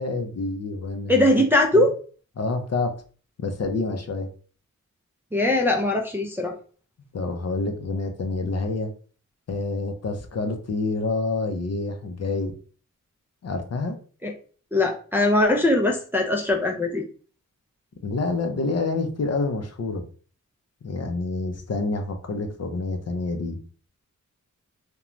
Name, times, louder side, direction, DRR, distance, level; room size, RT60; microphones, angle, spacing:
voice 1, 0.0-1.4 1.7-1.9 2.4-2.9 3.4-4.3 7.1-8.9 9.5-12.5 13.4-14.0 18.0-20.0 20.8-23.6, left 3 dB, 55° left, 5 dB, 0.5 m, -27 dB
voice 2, 1.1-1.9 5.3-6.5 14.2-14.3 14.7-17.0, left 1 dB, 5° right, -1 dB, 0.4 m, -21 dB
3.0 x 2.2 x 2.4 m, 0.40 s
wide cardioid pair, 125°, 31 cm